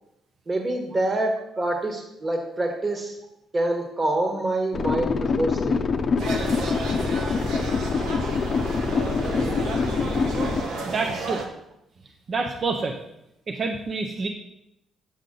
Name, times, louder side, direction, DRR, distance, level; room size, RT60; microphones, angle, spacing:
voice 1, 0.5-3.2 3.5-5.8, right 2 dB, 30° right, 2 dB, 1.5 m, -26 dB
sound 1, 4.7-10.6, left 5 dB, 45° left, 0.6 m, -25 dB
sound 2, 6.2-11.4, right 3 dB, 85° right, 1.0 m, -32 dB
voice 2, 10.9-11.5 12.3-13.0 13.5-14.3, right 3 dB, 45° right, 3 dB, 0.6 m, -27 dB
7.9 x 5.3 x 3.8 m, 0.85 s
cardioid pair, 90°, 0 cm